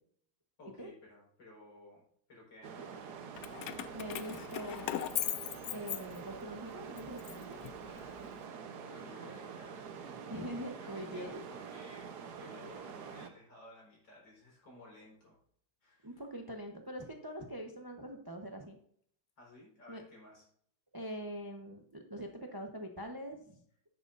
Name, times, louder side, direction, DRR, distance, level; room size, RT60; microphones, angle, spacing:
voice 1, 0.6-2.0 2.3-3.4 7.9-10.5 10.8-15.4 15.8-16.2 19.4-20.5, left 1 dB, 70° left, -4 dB, 5.3 m, -56 dB
sound 1, 2.6-13.3, right 6 dB, 60° right, 1.4 m, -46 dB
Keys jangling, 3.4-6.5 7.0-8.3, left 12 dB, 90° left, 0.7 m, -39 dB
voice 2, 3.9-4.9 5.7-7.6 9.1-9.4 10.3-11.4 16.0-18.8 19.9-20.0 20.9-23.6, equal, 25° right, 3 dB, 0.4 m, -43 dB
10.5 x 9.2 x 2.6 m, 0.65 s
omnidirectional pair, 2.1 m